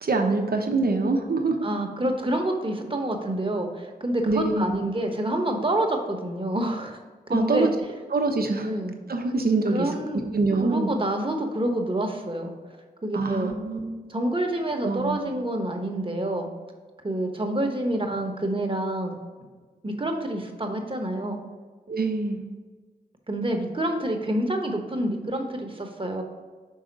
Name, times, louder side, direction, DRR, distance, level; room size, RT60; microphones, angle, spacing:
voice 1, 0.0-1.7 4.2-4.9 7.3-7.7 8.1-8.7 9.1-9.9 10.3-10.9 13.1-14.0 14.8-15.3 21.9-22.4, right 3 dB, 70° right, 4 dB, 0.9 m, -25 dB
voice 2, 1.6-7.0 7.3-7.7 8.6-9.0 9.7-10.2 10.6-12.5 13.0-13.5 14.1-16.5 17.0-19.2 19.8-21.4 23.3-26.2, right 1 dB, 30° right, 3 dB, 1.1 m, -27 dB
5.7 x 3.7 x 5.2 m, 1.4 s
cardioid pair, 50°, 17 cm